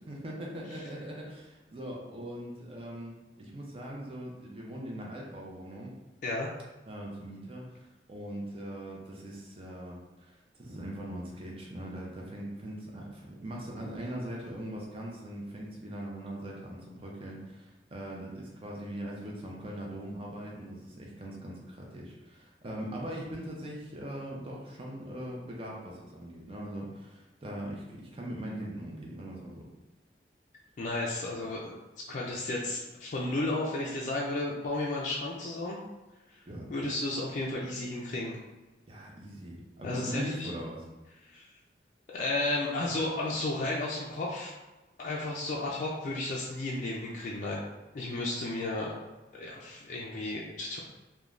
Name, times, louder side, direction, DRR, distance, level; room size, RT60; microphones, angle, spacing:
voice 1, 0.1-5.9 6.9-10.3 10.6-29.6 36.5-36.9 38.9-40.9, right 1 dB, 30° right, -2 dB, 0.5 m, -41 dB
voice 2, 30.8-31.7 32.1-35.8 36.3-36.4 36.7-38.4 39.8-40.5 41.2-41.5 42.1-44.5 45.0-47.6 47.9-48.9 49.4-50.8, left 2 dB, 45° left, -4 dB, 0.3 m, -33 dB
3.1 x 2.2 x 2.4 m, 1.1 s
head